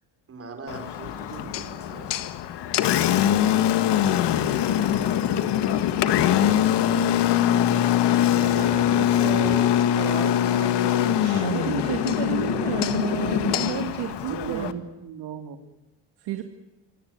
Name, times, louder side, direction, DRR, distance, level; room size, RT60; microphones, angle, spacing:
voice 1, 0.3-2.2 8.1-8.5, right 3 dB, 35° right, 5 dB, 5.1 m, -42 dB
Engine, 0.7-14.7, left 11 dB, 75° left, 1.8 m, -23 dB
sound 1, 2.5-12.9, left 1 dB, 20° left, 3.6 m, -48 dB
voice 2, 4.9-6.6, left 11 dB, 60° left, 12 dB, 1.8 m, -39 dB
voice 3, 8.1-12.6 13.1-13.6 14.0-15.6, right 8 dB, 65° right, 8 dB, 2.9 m, -36 dB
voice 4, 11.4-14.8 16.2-16.4, right 11 dB, 80° right, 6 dB, 2.0 m, -31 dB
26.0 x 18.0 x 9.5 m, 1.0 s
cardioid pair, 155°, 41 cm